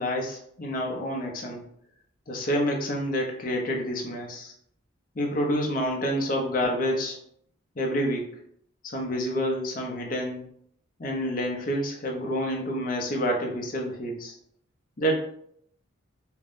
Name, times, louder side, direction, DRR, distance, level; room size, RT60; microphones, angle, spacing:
voice 1, 0.0-1.6 2.3-4.5 5.2-7.2 7.8-8.3 8.8-10.4 11.0-14.4 15.0-15.2, equal, 45° left, 0 dB, 0.6 m, -28 dB
2.5 x 2.1 x 3.5 m, 0.68 s
head